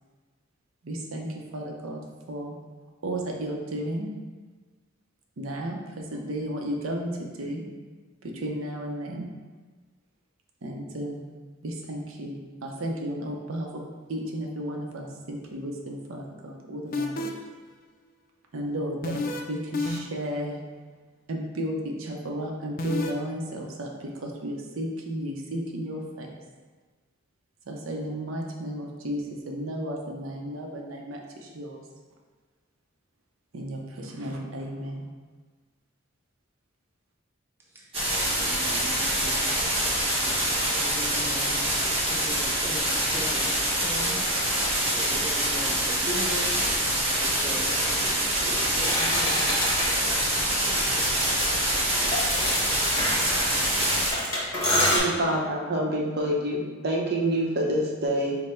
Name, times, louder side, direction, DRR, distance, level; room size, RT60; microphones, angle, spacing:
voice 1, 0.8-2.0 2.3-2.5 3.0-4.1 5.4-7.6 8.2-9.2 10.6-11.3 11.6-13.8 14.1-17.3 18.5-19.2 19.4-20.6 21.3-26.4 27.7-31.8 33.5-35.1, right 1 dB, 85° right, 0 dB, 0.6 m, -33 dB
sound 1, 16.9-17.5 19.0-19.4 19.7-20.3 22.8-23.1, left 2 dB, 45° left, 0.4 m, -29 dB
sound 2, 37.9-54.1, right 1 dB, 30° right, 1.1 m, -25 dB
voice 2, 38.4-39.5 40.8-44.3 45.0-46.7 47.1-51.5, right 1 dB, 10° right, -4 dB, 0.5 m, -39 dB
sound 3, 48.8-49.9 50.8-55.0, left 1 dB, 15° left, 1.2 m, -27 dB
voice 3, 54.8-58.4, right 1 dB, 50° right, -2 dB, 0.8 m, -26 dB
5.2 x 2.1 x 4.3 m, 1.4 s
head